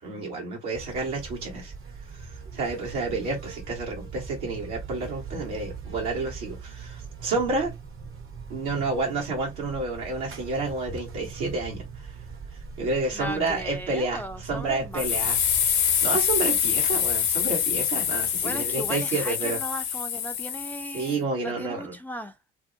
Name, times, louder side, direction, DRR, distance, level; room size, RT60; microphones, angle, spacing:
voice 1, 0.0-1.7 2.1-2.3 2.5-7.7 8.5-12.1 12.8-15.4 16.0-19.6 20.9-21.9, right 3 dB, 75° right, 1.3 m, -30 dB
Buzz, 0.7-15.7, right 5 dB, 45° right, 0.8 m, -41 dB
voice 2, 13.1-15.1 18.4-22.3, equal, 5° left, 0.4 m, -37 dB
sound 1, 15.0-21.1, left 8 dB, 70° left, 0.7 m, -25 dB
2.6 x 2.0 x 2.6 m
hypercardioid pair, 45°, 30 cm